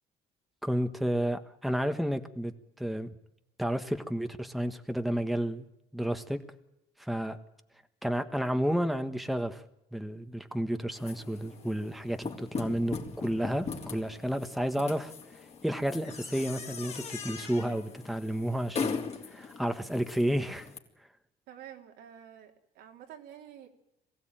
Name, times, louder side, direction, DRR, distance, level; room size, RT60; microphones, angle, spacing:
voice 1, 0.6-2.5 2.8-3.1 3.6-5.6 5.9-6.4 7.0-7.4 8.0-9.6 9.9-15.1 15.6-19.0 19.3-20.7, equal, ahead, 8 dB, 1.3 m, -31 dB
sound 1, 11.0-20.8, left 5 dB, 40° left, 3.3 m, -40 dB
voice 2, 21.5-23.7, right 10 dB, 80° right, 3 dB, 3.3 m, -49 dB
22.5 x 16.0 x 9.0 m, 0.88 s
cardioid pair, 110°, 17 cm